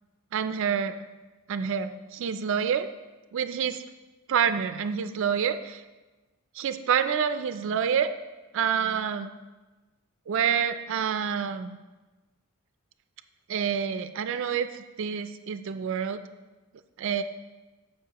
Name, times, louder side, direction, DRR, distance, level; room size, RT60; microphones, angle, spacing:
voice 1, 0.3-1.0 1.5-2.9 3.3-3.8 4.3-5.8 6.6-8.1 8.5-9.3 10.3-11.8 13.5-16.2 17.0-17.2, right 7 dB, 60° right, 10 dB, 0.3 m, -27 dB
13.5 x 5.4 x 2.9 m, 1.2 s
head